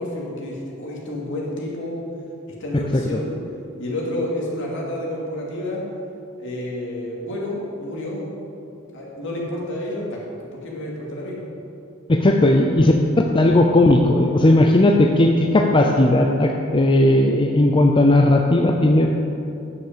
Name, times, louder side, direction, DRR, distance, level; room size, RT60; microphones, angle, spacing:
voice 1, 0.0-2.0 2.6-3.3 3.8-5.8 6.4-8.7 8.9-10.2 10.6-11.4, left 1 dB, 65° left, -4 dB, 2.5 m, -29 dB
voice 2, 2.7-3.2 12.1-12.9 13.3-19.1, left 1 dB, 25° left, 2 dB, 0.5 m, -16 dB
9.7 x 7.1 x 6.8 m, 2.7 s
head